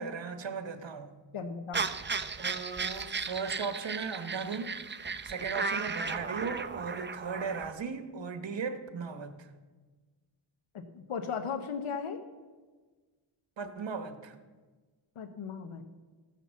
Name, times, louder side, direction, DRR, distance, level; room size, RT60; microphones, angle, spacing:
voice 1, 0.0-1.2 2.4-4.7 5.2-9.5 13.6-14.4, right 5 dB, 65° right, 9 dB, 1.2 m, -37 dB
voice 2, 1.3-1.8 10.7-12.2 15.2-15.8, left 6 dB, 85° left, 6 dB, 1.0 m, -36 dB
sound 1, 1.7-7.7, right 4 dB, 25° right, 0.6 m, -35 dB
14.5 x 5.9 x 7.2 m, 1.4 s
wide cardioid pair, 75°, 48 cm